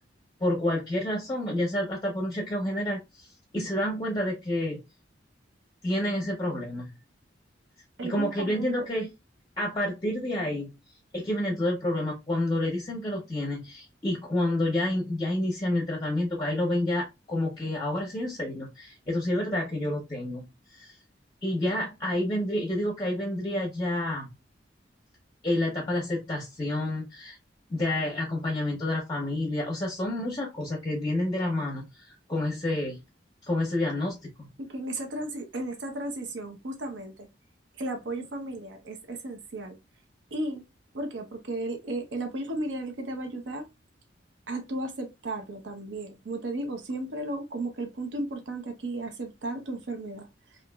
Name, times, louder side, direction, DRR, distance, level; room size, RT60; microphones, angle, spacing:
voice 1, 0.4-3.3 3.5-4.8 5.8-6.9 8.0-9.1 9.6-10.7 11.1-20.5 20.7-20.9 21.4-24.3 25.4-27.4 27.7-33.0 33.5-34.5, left 1 dB, 25° left, 0.6 m, -29 dB
voice 2, 8.0-8.7 34.6-37.3 37.8-39.8 40.3-40.6 40.9-43.7 44.5-50.6, right 2 dB, 80° right, 0.6 m, -34 dB
2.9 x 2.4 x 2.2 m
head